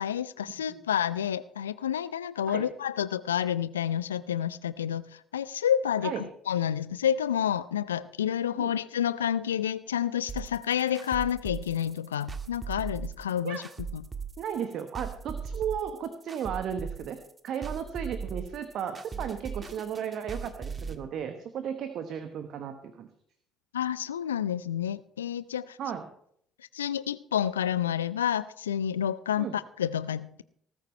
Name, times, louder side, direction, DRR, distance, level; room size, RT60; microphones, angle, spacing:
voice 1, 0.0-13.6 13.9-14.1 23.7-25.8 26.7-30.4, left 9 dB, 80° left, 17 dB, 0.5 m, -29 dB
sound 1, 10.3-21.0, right 5 dB, 30° right, 1.7 m, -38 dB
voice 2, 14.4-17.2 17.4-23.1 25.8-26.1 29.4-29.6, right 8 dB, 55° right, 8 dB, 1.3 m, -35 dB
19.0 x 13.5 x 3.3 m, 0.66 s
figure-of-eight pair, 50°, 0 cm